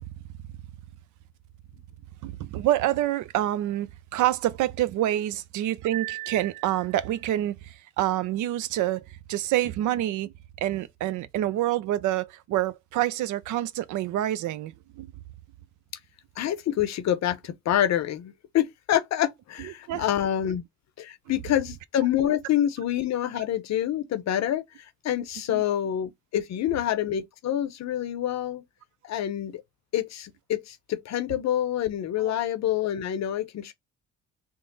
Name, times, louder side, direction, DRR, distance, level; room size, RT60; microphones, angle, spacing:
voice 1, 2.2-10.3 10.6-15.1 19.9-20.0 25.5-25.6 32.2-32.4, right 13 dB, 75° right, 0.5 m, -27 dB
voice 2, 16.4-20.6 21.0-28.6 29.0-29.6 29.9-33.7, left 11 dB, 60° left, 0.6 m, -27 dB
3.6 x 2.0 x 3.9 m
cardioid pair, 90°, 30 cm